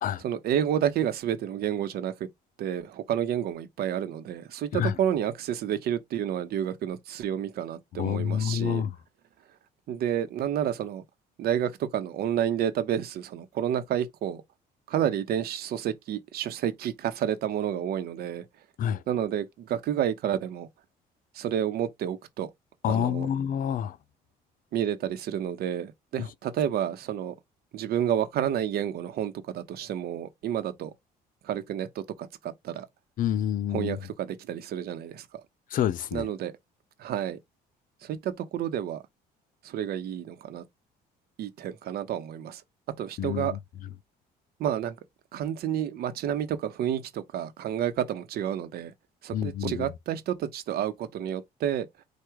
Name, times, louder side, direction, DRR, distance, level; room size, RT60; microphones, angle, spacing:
voice 1, 0.2-2.1 2.6-8.8 9.9-11.0 11.4-14.4 14.9-18.4 19.1-20.7 21.3-22.5 22.9-23.3 24.7-27.4 27.7-30.9 31.4-32.9 33.7-35.2 36.1-36.5 37.0-37.4 38.0-39.0 39.6-40.6 41.4-42.6 43.0-43.5 44.6-45.0 45.3-48.9 49.2-51.9, right 10 dB, 65° right, 0.9 m, -30 dB
voice 2, 7.9-9.0 18.8-19.0 22.8-24.0 26.2-26.3 33.2-34.0 35.7-36.3 43.2-43.6 49.3-49.9, left 9 dB, 55° left, 0.5 m, -28 dB
4.8 x 2.4 x 4.6 m
cardioid pair, 110°, 17 cm